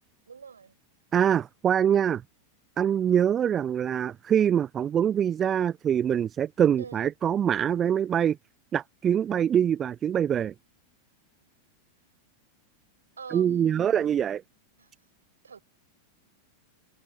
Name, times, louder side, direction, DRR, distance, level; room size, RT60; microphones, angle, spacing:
voice 1, 0.3-0.8 6.8-7.0 13.2-14.3 14.8-14.9 15.4-15.6, right 6 dB, 70° right, 5.7 m, -44 dB
voice 2, 1.1-2.2 2.8-8.4 8.7-10.5 13.3-14.4, right 9 dB, 25° right, 0.3 m, -24 dB
figure-of-eight pair, 90°, 0 cm